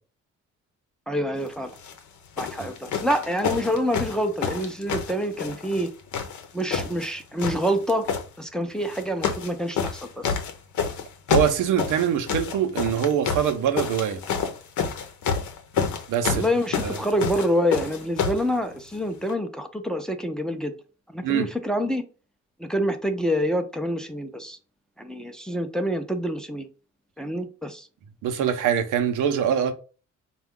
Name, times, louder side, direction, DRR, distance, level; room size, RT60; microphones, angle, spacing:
voice 1, 1.1-1.8 2.4-5.9 6.5-8.1 8.4-10.4 16.3-20.7 21.1-22.0 22.6-24.6 25.0-26.7 27.2-27.9, equal, ahead, 0.5 m, -27 dB
sound 1, 1.7-2.0 2.4-5.9 6.1-7.1 7.4-8.2 8.9-9.5 9.8-18.5 19.3-19.4, left 6 dB, 75° left, 0.8 m, -28 dB
voice 2, 11.3-14.2 16.1-16.4 16.8-17.0 21.2-21.5 28.2-29.7, right 9 dB, 85° right, 0.7 m, -23 dB
4.4 x 2.3 x 3.6 m
cardioid pair, 90°, 30 cm